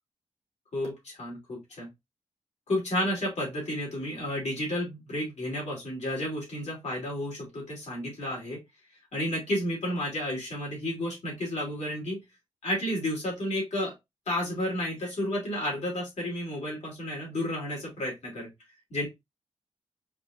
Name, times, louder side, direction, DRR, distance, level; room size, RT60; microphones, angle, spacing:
voice 1, 0.7-1.9 2.7-8.6 9.1-12.2 12.6-13.9 14.3-18.5 18.9-19.1, left 1 dB, 75° left, -3 dB, 2.9 m, -31 dB
5.3 x 2.9 x 2.6 m, 0.20 s
wide cardioid pair, 85°, 12 cm